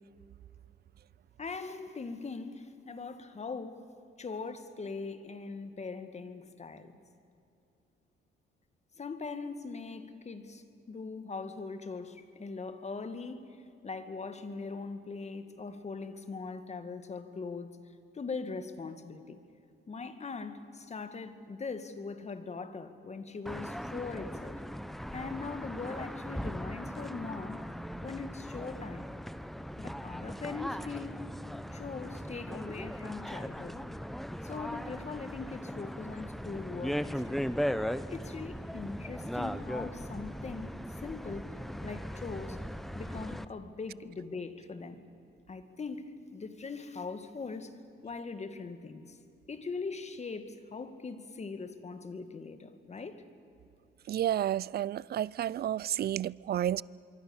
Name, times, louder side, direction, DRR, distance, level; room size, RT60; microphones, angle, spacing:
voice 1, 1.4-3.9 4.2-6.9 9.0-13.6 13.8-17.7 18.1-19.4 19.9-24.6 25.1-27.6 28.0-29.1 29.8-31.2 31.7-33.8 34.4-37.5 38.1-40.7 41.0-41.5 41.8-42.6 42.9-45.0 45.5-49.2 49.5-53.2, left 4 dB, 35° left, 9 dB, 2.1 m, -41 dB
sound 1, 23.5-43.5, equal, ahead, 0.8 m, -38 dB
voice 2, 54.1-56.8, right 11 dB, 50° right, 24 dB, 0.5 m, -31 dB
25.5 x 23.5 x 7.3 m, 2.7 s
cardioid pair, 90°, 20 cm